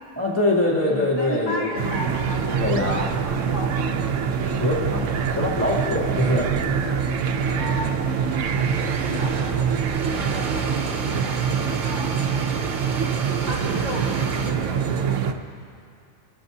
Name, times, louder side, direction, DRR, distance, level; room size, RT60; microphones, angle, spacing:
voice 1, 0.2-1.7 2.5-3.1 4.3-5.0 5.3-6.5, left 1 dB, 10° left, -6 dB, 2.6 m, -23 dB
voice 2, 0.8-4.0 6.2-6.4 7.6-12.2 13.4-15.3, left 1 dB, 40° left, -8 dB, 1.8 m, -35 dB
sound 1, 1.8-15.3, right 7 dB, 85° right, 1.0 m, -25 dB
sound 2, 2.1-14.5, right 3 dB, 40° right, 1.1 m, -37 dB
24.0 x 13.5 x 2.7 m, 2.4 s
omnidirectional pair, 1.3 m